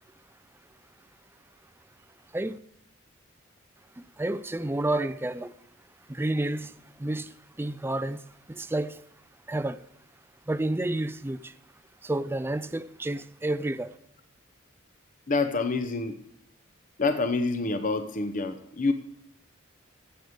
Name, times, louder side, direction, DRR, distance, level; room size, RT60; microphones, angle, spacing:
voice 1, 4.0-5.5 6.1-9.0 9.5-9.8 10.5-11.5 12.0-14.0, right 1 dB, 10° right, 0.4 m, -30 dB
voice 2, 15.3-16.2 17.0-18.9, left 3 dB, 40° left, 0.8 m, -27 dB
15.5 x 8.1 x 5.3 m
head